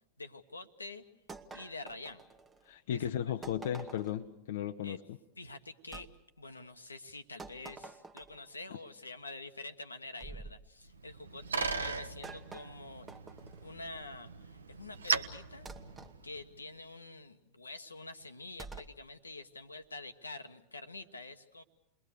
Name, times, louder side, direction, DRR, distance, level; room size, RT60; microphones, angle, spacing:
voice 1, 0.2-1.0 1.5-2.2 2.9-3.1 4.8-5.0 5.4-6.1 6.4-13.1 13.6-15.7 16.2-21.6, left 2 dB, 80° left, 8 dB, 1.3 m, -47 dB
sound 1, 1.3-2.7 3.4-4.3 5.9-6.1 7.4-8.5 10.2-10.6 11.6-13.7 15.7-16.2 18.6-19.0, right 4 dB, 15° right, 1.2 m, -48 dB
voice 2, 2.6-5.0, left 10 dB, 55° left, 7 dB, 0.8 m, -35 dB
Bicycle, 10.9-16.6, right 4 dB, 70° right, 1.0 m, -38 dB
29.0 x 21.5 x 6.7 m, 0.85 s
figure-of-eight pair, 90°, 0 cm